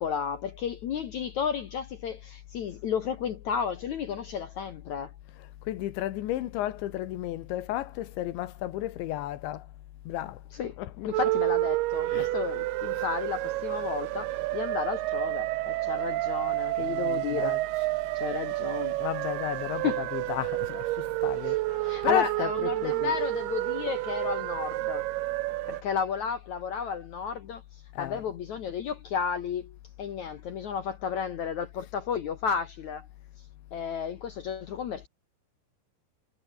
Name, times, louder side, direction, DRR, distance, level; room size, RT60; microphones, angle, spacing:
voice 1, 0.0-5.1 10.6-10.8 11.0-17.6 18.1-19.0 19.8-20.0 21.5-21.6 21.8-25.0 25.7-27.6 28.0-33.1 33.7-35.1, left 7 dB, 60° left, 2.0 m, -32 dB
voice 2, 5.7-9.7 10.1-10.4 10.8-11.3 12.1-12.3 13.0-13.1 16.8-17.7 19.0-23.2 28.0-28.3, left 14 dB, 85° left, 3.8 m, -33 dB
sound 1, 11.1-25.8, right 20 dB, 85° right, 2.4 m, -30 dB
omnidirectional pair, 5.1 m